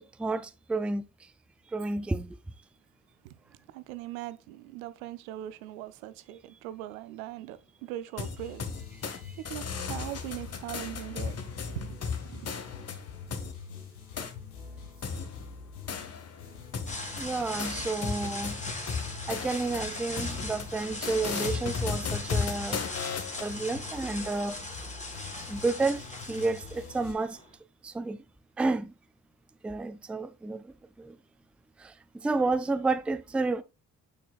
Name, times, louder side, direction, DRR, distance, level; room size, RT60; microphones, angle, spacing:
voice 1, 0.2-1.0 1.7-2.4 9.1-9.2 17.2-18.6 19.3-22.8 23.4-24.6 25.5-26.0 26.3-27.4 27.8-28.2 28.6-28.9 29.6-30.6 31.0-31.2 31.8-31.9 32.2-33.6, right 3 dB, 5° right, 0.4 m, -30 dB
voice 2, 3.7-8.6 9.4-11.4 11.7-12.0 12.3-12.5, right 13 dB, 75° right, 0.6 m, -40 dB
sound 1, 8.2-9.2 9.4-13.5 14.2-14.3 15.0-16.4 16.7-23.5, left 5 dB, 35° left, 1.0 m, -35 dB
sound 2, 8.4-27.1, left 6 dB, 80° left, 1.2 m, -46 dB
sound 3, 16.9-27.5, left 2 dB, 15° left, 1.8 m, -40 dB
6.8 x 6.1 x 2.3 m
figure-of-eight pair, 40°, 43 cm